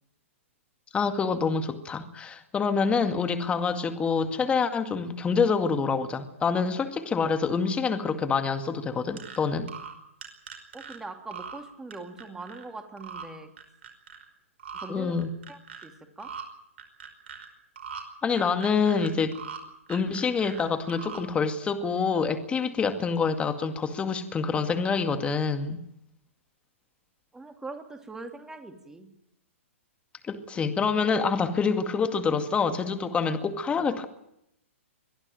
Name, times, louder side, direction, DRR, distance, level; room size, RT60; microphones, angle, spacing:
voice 1, 0.9-9.7 14.9-15.3 18.2-19.3 19.9-25.8 30.3-34.0, left 5 dB, 15° left, 7 dB, 2.1 m, -26 dB
sound 1, 9.2-9.4 9.7-10.0 10.2-11.0 11.3-11.6 11.9-12.6 13.0-13.3 13.6-14.2 14.6-14.9 15.2-15.9 16.2-16.4 16.8-17.5 17.8-18.0 18.3-19.6 19.9-20.6 20.9-21.2, right 7 dB, 55° right, 5.2 m, -41 dB
voice 2, 10.7-13.5 14.8-15.2 15.5-16.3 27.3-29.1, right 3 dB, 5° right, 5 dB, 2.9 m, -42 dB
23.0 x 15.0 x 9.2 m, 0.78 s
figure-of-eight pair, 115°, 7 cm